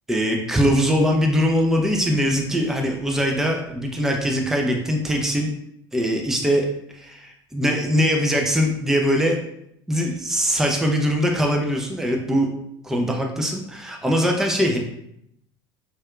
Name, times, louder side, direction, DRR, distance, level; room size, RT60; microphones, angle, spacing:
voice 1, 0.1-5.5 5.9-9.4 9.9-12.5 12.8-14.8, equal, 5° right, 1 dB, 0.5 m, -22 dB
4.2 x 2.4 x 2.3 m, 0.76 s
hypercardioid pair, 70°, 13 cm